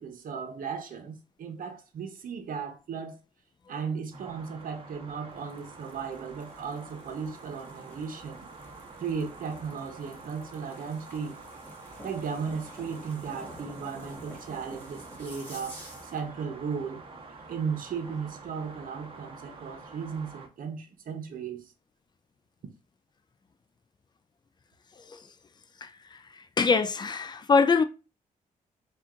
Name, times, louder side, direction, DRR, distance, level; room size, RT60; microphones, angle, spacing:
voice 1, 0.0-3.2 3.7-8.5 9.0-11.4 12.0-17.0 17.5-21.7, right 6 dB, 65° right, 1.0 m, -36 dB
sound 1, 4.1-20.5, right 3 dB, 35° right, 1.1 m, -47 dB
sound 2, 5.3-16.3, equal, 10° left, 1.5 m, -50 dB
voice 2, 25.8-26.2 26.6-27.8, left 4 dB, 30° left, 0.4 m, -24 dB
4.3 x 2.5 x 3.6 m
cardioid pair, 115°, 15 cm